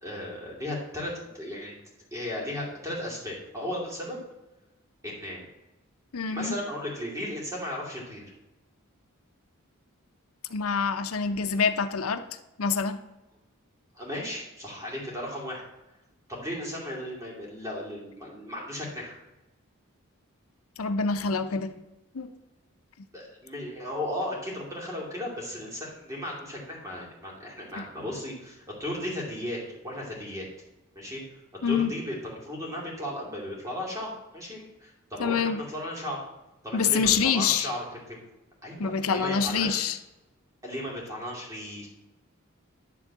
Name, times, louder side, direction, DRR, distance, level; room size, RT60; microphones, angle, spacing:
voice 1, 0.0-1.8 2.1-4.2 5.0-5.4 6.3-8.2 13.9-15.6 16.3-19.2 23.1-30.5 30.9-31.2 31.6-36.2 36.6-38.2 38.6-39.8 40.6-41.9, left 1 dB, 15° right, -3 dB, 2.4 m, -35 dB
voice 2, 6.1-6.5 10.5-12.2 12.6-13.0 20.8-21.7 22.1-22.3 27.8-27.9 31.6-31.9 35.2-35.6 36.7-37.7 38.8-40.0, left 6 dB, 85° left, 8 dB, 0.7 m, -26 dB
11.0 x 3.8 x 7.2 m, 0.99 s
head